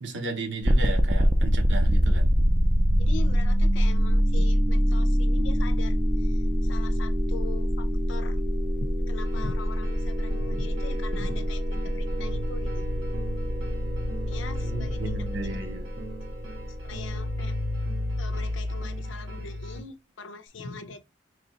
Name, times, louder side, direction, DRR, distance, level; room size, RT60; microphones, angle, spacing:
voice 1, 0.0-2.3 4.4-4.5 14.6-15.9, right 2 dB, 70° right, 0.9 m, -34 dB
sound 1, 0.6-17.5, equal, 25° right, 0.5 m, -24 dB
voice 2, 3.0-8.4 8.8-12.9 14.3-15.5 16.8-17.6 18.2-21.0, left 5 dB, 80° left, 0.5 m, -42 dB
sound 2, 9.2-19.8, left 1 dB, 85° right, 1.4 m, -34 dB
3.3 x 2.8 x 4.2 m
head